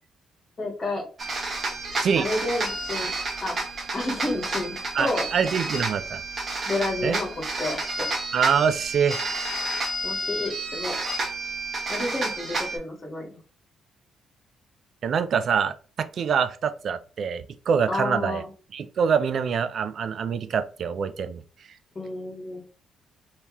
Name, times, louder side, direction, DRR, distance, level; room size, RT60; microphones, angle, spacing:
voice 1, 0.6-1.0 2.1-3.1 3.4-3.6 3.9-5.2 6.6-8.1 10.0-10.9 11.9-13.4 17.9-18.5 21.9-22.6, left 2 dB, 35° left, 1.6 m, -30 dB
sound 1, 1.2-12.8, right 2 dB, 40° right, 1.3 m, -30 dB
voice 2, 5.0-6.2 7.0-7.2 8.3-9.2 15.0-18.4 18.7-21.4, right 6 dB, 60° right, 0.4 m, -25 dB
3.4 x 2.9 x 3.0 m
cardioid pair, 90°, 0 cm